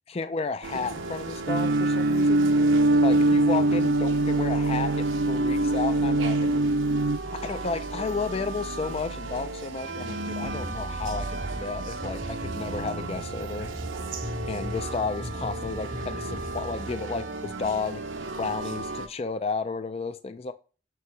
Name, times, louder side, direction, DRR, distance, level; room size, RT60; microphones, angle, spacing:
voice 1, 0.1-2.5 3.0-6.5 7.3-13.7 14.5-18.0 18.4-20.5, left 4 dB, 30° left, 0.4 m, -32 dB
sound 1, 0.6-19.1, right 2 dB, 90° right, 0.9 m, -35 dB
sound 2, 1.5-7.2, right 2 dB, 55° right, 0.4 m, -22 dB
sound 3, 10.4-16.8, equal, 5° left, 0.7 m, -39 dB
6.8 x 4.7 x 3.2 m
head